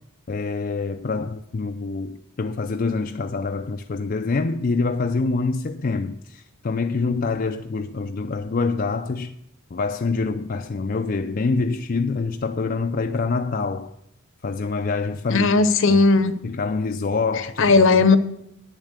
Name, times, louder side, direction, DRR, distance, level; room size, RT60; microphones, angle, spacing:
voice 1, 0.3-9.3 9.7-13.9 14.4-15.6 15.9-16.0 16.4-17.7, left 4 dB, 40° left, 0.4 m, -26 dB
voice 2, 15.3-16.4 17.6-18.2, left 3 dB, 60° left, 0.8 m, -16 dB
9.8 x 7.4 x 8.1 m
head